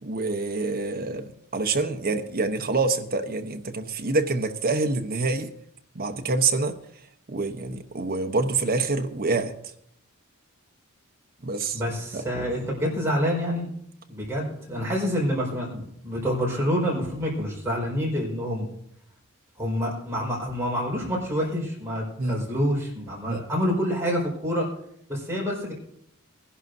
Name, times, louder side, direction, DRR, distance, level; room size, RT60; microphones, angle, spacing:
voice 1, 0.0-5.5 5.9-6.8 7.3-9.5 11.4-11.8 12.1-12.3 22.2-22.4 23.3-23.4, right 3 dB, 45° right, 0.9 m, -26 dB
voice 2, 11.7-13.7 14.1-18.7 19.6-24.7 25.1-25.7, equal, 15° right, 4.7 m, -27 dB
21.0 x 11.5 x 2.7 m
head